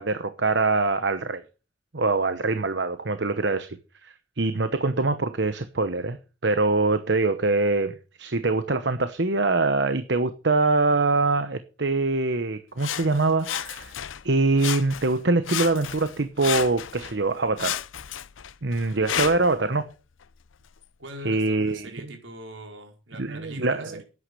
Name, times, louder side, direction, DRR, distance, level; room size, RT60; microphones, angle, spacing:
voice 1, 0.0-1.4 1.9-6.2 6.4-13.9 14.2-17.8 18.6-19.9 21.2-21.9 23.2-23.9, right 3 dB, 60° right, 1.0 m, -24 dB
Sawing, 12.8-14.3 14.6-15.2 15.4-17.2 17.6-19.6 20.2-20.3, left 10 dB, 85° left, 0.6 m, -32 dB
voice 2, 21.0-24.0, right 1 dB, 75° right, 4.6 m, -42 dB
11.5 x 9.6 x 6.9 m
head